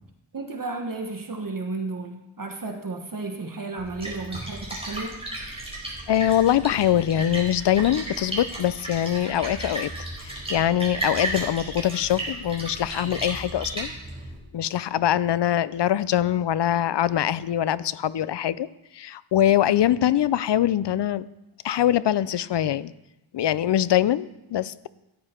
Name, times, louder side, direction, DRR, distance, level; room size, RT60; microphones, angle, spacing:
voice 1, 0.3-5.2, right 3 dB, 45° right, 3 dB, 1.3 m, -33 dB
Splash splatter, 3.8-14.4, right 1 dB, 10° right, 4.3 m, -34 dB
voice 2, 6.1-9.9 10.2-13.9 14.5-18.7 18.9-21.3 21.6-22.9 23.3-24.9, left 11 dB, 65° left, 18 dB, 0.5 m, -23 dB
14.5 x 10.0 x 4.4 m, 0.94 s
wide cardioid pair, 115°, 46 cm